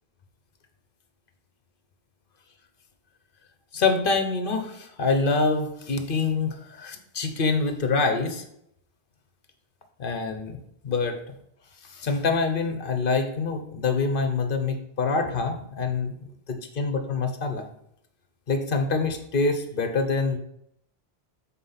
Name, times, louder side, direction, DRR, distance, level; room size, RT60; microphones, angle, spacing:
voice 1, 3.7-8.4 10.0-10.6 10.8-11.2 11.8-16.1 16.5-17.6 18.5-20.4, left 4 dB, 55° left, 6 dB, 1.0 m, -25 dB
7.4 x 4.2 x 5.6 m, 0.74 s
omnidirectional pair, 1.1 m